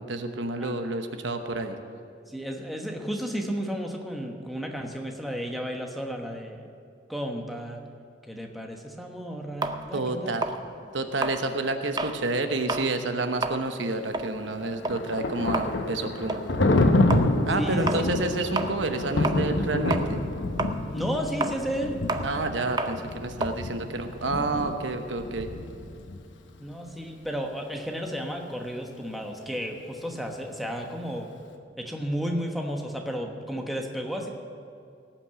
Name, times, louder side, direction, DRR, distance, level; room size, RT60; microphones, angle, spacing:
voice 1, 0.1-1.8 9.9-10.5 10.9-16.4 17.5-20.2 22.2-25.5, right 2 dB, 85° right, 7 dB, 1.0 m, -29 dB
voice 2, 2.3-6.7 7.1-7.8 8.3-10.4 17.6-17.9 20.9-21.9 26.6-31.3 31.8-34.3, equal, ahead, 1 dB, 1.1 m, -33 dB
sound 1, 9.6-12.2 12.6-12.9 13.3-19.6 19.9-24.7, right 3 dB, 25° right, 0.6 m, -32 dB
Thunder, 14.4-26.2, left 2 dB, 90° left, 1.0 m, -28 dB
17.5 x 6.1 x 8.1 m, 2.5 s
head